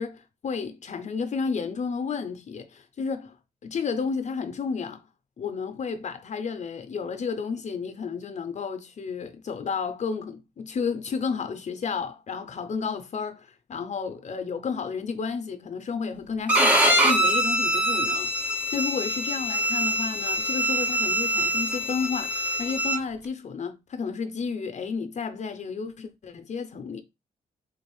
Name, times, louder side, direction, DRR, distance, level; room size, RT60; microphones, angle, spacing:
voice 1, 0.0-3.4 3.6-5.0 5.4-27.0, left 5 dB, 50° left, 0.5 m, -32 dB
Bowed string instrument, 16.5-23.0, equal, 10° right, 0.7 m, -24 dB
3.6 x 2.5 x 3.1 m
cardioid pair, 75°, 16 cm